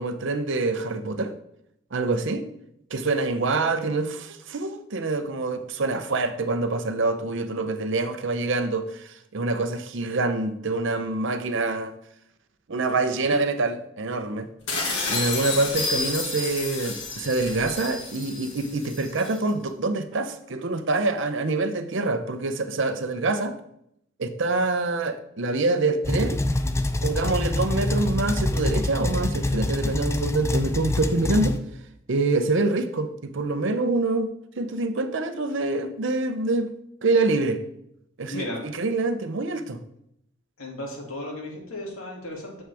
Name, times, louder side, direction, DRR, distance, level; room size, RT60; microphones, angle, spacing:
voice 1, 0.0-1.3 1.9-2.5 2.9-11.9 12.7-14.5 15.1-23.6 24.2-26.4 27.0-31.6 32.1-36.7 37.0-37.6 38.2-39.8, right 3 dB, 60° right, 0.7 m, -26 dB
sound 1, 14.7-19.4, left 3 dB, 60° left, 2.0 m, -30 dB
sound 2, 26.0-31.6, left 1 dB, 15° left, 0.3 m, -26 dB
voice 2, 38.3-38.6 40.6-42.6, left 1 dB, 80° left, 2.5 m, -35 dB
7.5 x 7.3 x 3.5 m
head